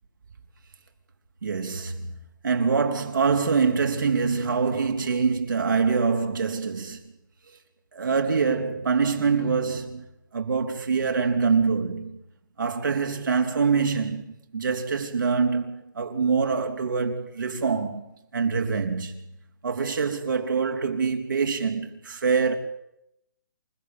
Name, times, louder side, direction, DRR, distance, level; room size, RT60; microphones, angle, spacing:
voice 1, 1.4-2.2 2.4-7.0 7.5-7.6 7.9-10.0 10.3-12.2 12.6-14.3 14.5-18.0 18.3-19.4 19.6-22.6, right 5 dB, 75° right, 3.8 m, -25 dB
28.5 x 15.0 x 9.3 m
hypercardioid pair, 175°, 11 cm